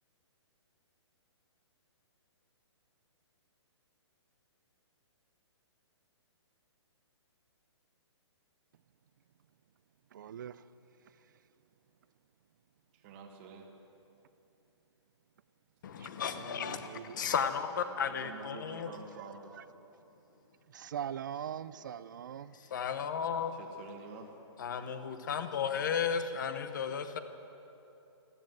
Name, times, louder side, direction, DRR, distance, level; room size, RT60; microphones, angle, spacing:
voice 1, 10.1-10.6 16.0-16.1 16.3-17.3 20.7-22.6 25.8-26.2, right 9 dB, 45° right, 17 dB, 0.4 m, -42 dB
voice 2, 12.9-13.7 17.9-19.6 23.5-24.3, right 4 dB, 25° right, 2 dB, 1.3 m, -48 dB
voice 3, 15.8-16.9 17.1-18.9 22.7-23.5 24.6-27.2, left 7 dB, 45° left, 10 dB, 1.0 m, -34 dB
14.0 x 12.5 x 7.7 m, 2.9 s
hypercardioid pair, 170°, 15 cm